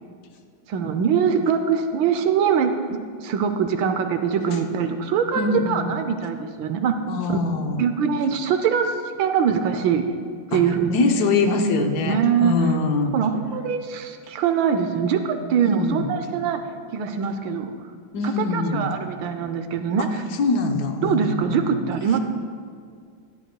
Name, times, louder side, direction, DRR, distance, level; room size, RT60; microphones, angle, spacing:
voice 1, 0.7-6.9 7.3-7.4 7.8-10.0 10.5-10.9 12.1-12.5 13.1-16.6 16.9-17.7 18.2-20.2 21.0-22.2, right 7 dB, 80° right, 8 dB, 1.4 m, -23 dB
voice 2, 5.3-5.9 7.1-7.8 10.5-13.1 15.6-16.1 18.1-18.9 20.0-20.1 20.4-21.7, left 3 dB, 60° left, 4 dB, 1.2 m, -23 dB
16.0 x 12.0 x 2.3 m, 2.1 s
omnidirectional pair, 2.2 m